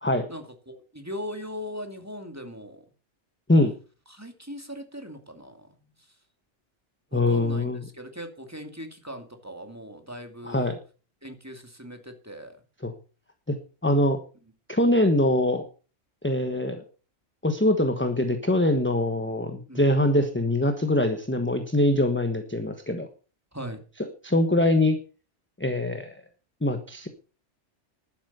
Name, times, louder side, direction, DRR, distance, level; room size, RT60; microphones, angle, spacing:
voice 1, 0.3-2.8 4.1-5.7 7.1-10.7 11.2-12.6 19.7-19.9 23.5-23.8, equal, 15° right, 5 dB, 2.5 m, -39 dB
voice 2, 7.1-7.8 10.4-10.8 12.8-12.9 13.5-13.6 13.8-14.2 14.7-15.7 16.2-16.8 17.4-23.1 24.0-25.0 25.6-26.2 26.6-27.1, left 1 dB, 10° left, 7 dB, 1.2 m, -23 dB
11.5 x 9.7 x 6.9 m, 0.37 s
omnidirectional pair, 1.2 m